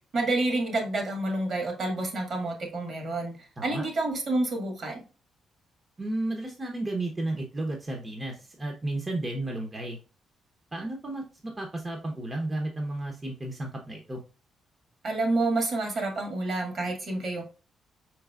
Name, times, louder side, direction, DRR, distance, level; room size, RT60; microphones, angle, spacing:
voice 1, 0.1-5.0 15.0-17.4, right 2 dB, 55° right, 3 dB, 1.8 m, -29 dB
voice 2, 6.0-10.0 10.7-14.2, right 2 dB, 25° right, 1 dB, 0.9 m, -33 dB
4.8 x 4.6 x 2.4 m, 0.33 s
cardioid pair, 85°, 0 cm